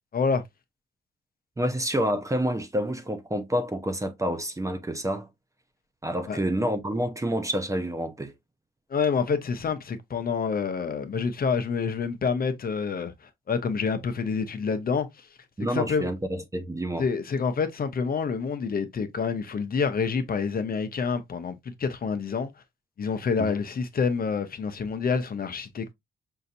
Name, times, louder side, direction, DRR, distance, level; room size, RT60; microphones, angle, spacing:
voice 1, 0.1-0.4 6.3-6.4 8.9-13.1 13.5-15.1 15.7-16.1 17.0-22.5 23.0-25.9, left 5 dB, 45° left, 0.7 m, -27 dB
voice 2, 1.6-5.3 6.0-8.3 15.6-17.1 23.4-23.5, equal, 15° right, 0.7 m, -28 dB
5.6 x 2.6 x 2.6 m
cardioid pair, 100°, 21 cm